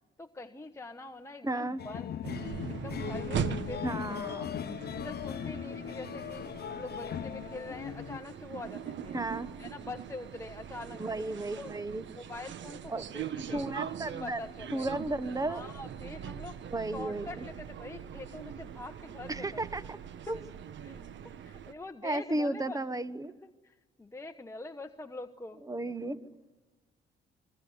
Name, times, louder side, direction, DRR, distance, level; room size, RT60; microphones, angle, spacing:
voice 1, 0.2-2.3 2.7-4.5 4.9-9.1 9.6-11.2 11.5-11.7 12.1-13.6 14.2-14.9 15.4-16.7 16.9-19.6 20.8-22.8 23.6-25.6, left 2 dB, 15° left, 5 dB, 1.2 m, -44 dB
voice 2, 1.4-1.8 3.8-4.9 9.1-9.5 11.0-12.0 12.9-13.0 13.5-14.4 14.7-15.6 16.7-17.4 19.3-20.0 20.3-20.4 22.0-23.3 25.7-26.2, right 2 dB, 15° right, 13 dB, 1.4 m, -34 dB
sound 1, 1.8-8.2, left 9 dB, 55° left, 0.9 m, -38 dB
sound 2, 2.2-21.7, right 9 dB, 70° right, 1.3 m, -41 dB
26.0 x 21.5 x 9.7 m, 1.2 s
cardioid pair, 90°, 20 cm